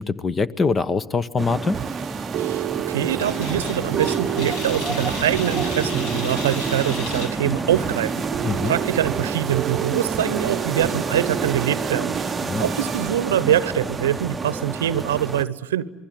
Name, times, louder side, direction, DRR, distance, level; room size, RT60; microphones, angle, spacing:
voice 1, 0.0-1.8 8.4-8.7 12.4-12.7, left 4 dB, 30° left, 17 dB, 1.0 m, -23 dB
sound 1, 1.4-15.4, right 3 dB, 20° right, 0.8 m, -29 dB
sound 2, 1.5-14.3, right 12 dB, 50° right, 0.8 m, -31 dB
voice 2, 2.4-8.1 8.6-12.2 12.6-15.9, right 11 dB, 80° right, 17 dB, 0.9 m, -24 dB
sound 3, 3.2-8.2, left 1 dB, 70° left, 7.0 m, -34 dB
28.0 x 21.5 x 9.3 m, 1.2 s
hypercardioid pair, 75°, 0 cm